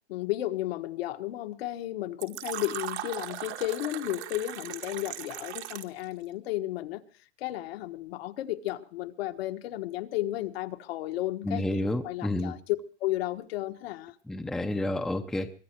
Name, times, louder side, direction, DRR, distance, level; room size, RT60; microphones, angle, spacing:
voice 1, 0.1-7.0 7.4-14.1, left 15 dB, 60° left, 1.4 m, -33 dB
Fill (with liquid), 2.2-6.0, right 14 dB, 75° right, 1.9 m, -38 dB
voice 2, 11.4-12.5 14.3-15.5, left 1 dB, ahead, 0.7 m, -30 dB
23.5 x 11.0 x 4.5 m
supercardioid pair, 155°, 34 cm